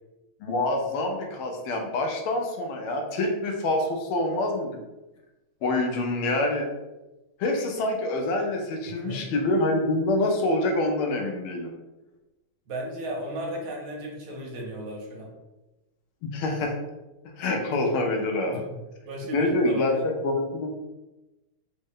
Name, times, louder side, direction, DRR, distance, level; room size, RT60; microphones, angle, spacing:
voice 1, 0.4-4.8 5.6-6.7 7.4-11.7 16.2-16.7 17.4-18.7 19.3-20.0 20.2-20.7, left 2 dB, 80° left, 2 dB, 1.5 m, -26 dB
voice 2, 8.9-9.3 12.7-15.3 18.5-20.1, equal, 70° right, -1 dB, 1.6 m, -35 dB
4.0 x 2.1 x 3.6 m, 1.0 s
omnidirectional pair, 2.4 m